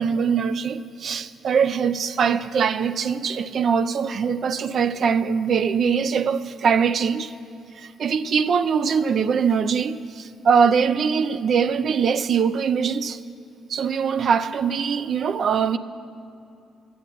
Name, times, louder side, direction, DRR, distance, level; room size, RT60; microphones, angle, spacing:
voice 1, 0.0-7.3 7.8-13.2 13.7-15.8, right 6 dB, 55° right, 0.5 m, -22 dB
13.0 x 8.7 x 7.7 m
cardioid pair, 90°, 0 cm